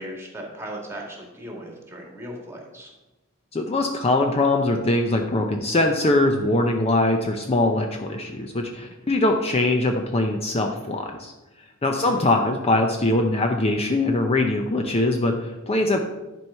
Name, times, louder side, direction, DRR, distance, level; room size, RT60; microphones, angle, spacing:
voice 1, 0.0-2.9 11.9-12.2, equal, 10° right, 0 dB, 1.9 m, -37 dB
voice 2, 3.5-11.3 11.8-16.0, left 2 dB, 30° left, 3 dB, 0.6 m, -22 dB
11.0 x 4.6 x 5.6 m, 1.1 s
head